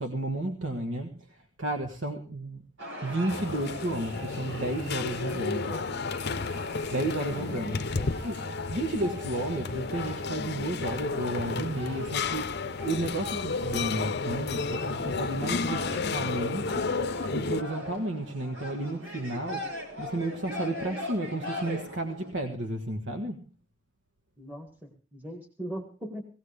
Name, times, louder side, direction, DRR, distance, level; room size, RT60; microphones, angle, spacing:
voice 1, 0.0-2.7 3.0-5.8 6.9-7.8 8.2-8.4 8.7-16.9 17.3-23.5, right 1 dB, 65° right, 5 dB, 1.6 m, -32 dB
sound 1, 2.8-22.3, left 1 dB, 85° right, 5.8 m, -41 dB
sound 2, 3.3-17.6, left 4 dB, 55° left, 0.7 m, -32 dB
voice 2, 5.2-5.9 7.5-8.2 24.4-26.2, equal, 10° right, 4 dB, 1.7 m, -40 dB
18.5 x 17.0 x 3.4 m, 0.34 s
head